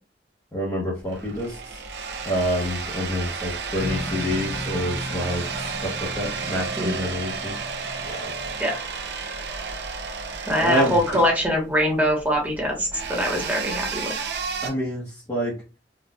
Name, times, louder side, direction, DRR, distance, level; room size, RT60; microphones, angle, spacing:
voice 1, 0.5-1.5 2.2-5.4 5.8-5.9 6.2-7.5 8.1-8.3 10.6-10.9 14.6-15.0 15.3-15.5, equal, 20° left, -5 dB, 0.9 m, -27 dB
sound 1, 1.0-14.7, right 5 dB, 70° right, 0.6 m, -32 dB
sound 2, 3.8-8.8, left 1 dB, 85° left, 1.8 m, -36 dB
voice 2, 10.5-14.2, equal, 10° right, -1 dB, 1.2 m, -23 dB
3.9 x 2.4 x 2.3 m, 0.31 s
head